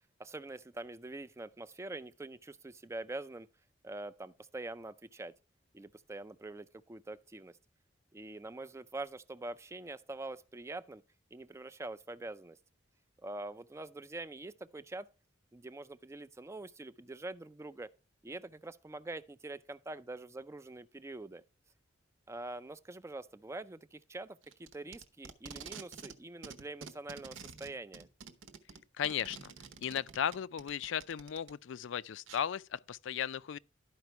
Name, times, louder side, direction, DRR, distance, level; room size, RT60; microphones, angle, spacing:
voice 1, 0.2-3.5 3.8-5.3 5.7-7.6 8.1-11.0 11.3-12.6 13.2-15.1 15.5-17.9 18.2-21.4 22.3-28.1, right 2 dB, 15° right, 0.3 m, -44 dB
Packing tape duct tape, 24.4-26.2 26.4-31.5 32.3-32.4, right 5 dB, 90° right, 1.0 m, -49 dB
voice 2, 29.0-29.5 29.8-33.6, left 8 dB, 75° left, 0.4 m, -36 dB
12.0 x 5.1 x 4.5 m
head